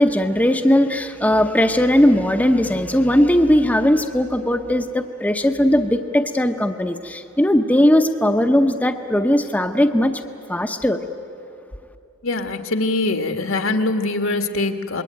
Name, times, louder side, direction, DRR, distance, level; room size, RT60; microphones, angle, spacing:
voice 1, 0.0-10.2 10.5-11.0, left 1 dB, 5° left, 5 dB, 0.8 m, -18 dB
voice 2, 12.2-15.0, left 2 dB, 75° left, 6 dB, 1.8 m, -23 dB
27.0 x 21.5 x 9.2 m, 2.6 s
head